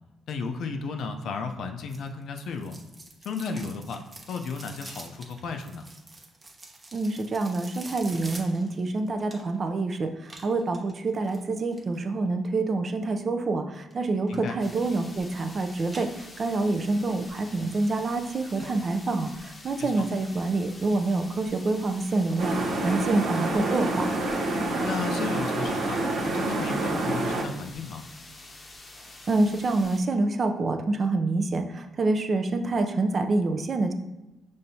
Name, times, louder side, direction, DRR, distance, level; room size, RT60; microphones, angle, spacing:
voice 1, 0.3-2.8 3.2-4.0 4.3-5.8 14.3-14.6 19.8-20.0 24.8-28.0, left 4 dB, 70° left, 6 dB, 0.5 m, -34 dB
sound 1, 1.9-9.7 10.2-12.0 13.9-14.4 14.7-15.5 15.8-16.7 17.1-17.2 17.8-17.9 18.2-18.3 18.6-18.7 19.1-19.2, right 2 dB, 25° right, 0.9 m, -46 dB
voice 2, 6.9-24.1 29.3-33.9, right 3 dB, 45° right, 7 dB, 0.5 m, -27 dB
sound 2, 14.6-30.0, left 2 dB, 30° left, 0.7 m, -47 dB
sound 3, 22.4-27.4, right 2 dB, 85° right, 0.9 m, -27 dB
5.6 x 3.3 x 2.7 m, 1.0 s
cardioid pair, 90°, 0 cm